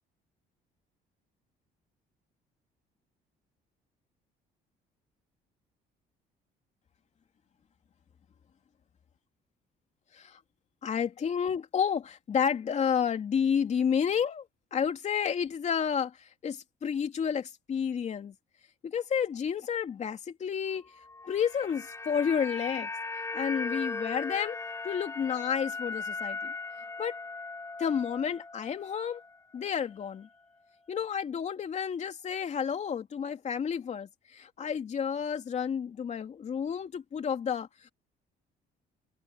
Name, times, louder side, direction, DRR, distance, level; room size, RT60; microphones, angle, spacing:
voice 1, 10.8-14.5 14.7-18.3 18.8-20.9 21.2-22.9 23.3-24.6 24.8-26.5 27.0-27.1 27.8-29.2 29.5-30.3 30.9-37.9, left 7 dB, 45° left, 2.9 m, -30 dB
sound 1, 21.1-29.4 29.7-29.8, left 3 dB, 15° left, 4.0 m, -38 dB
cardioid pair, 110°, 17 cm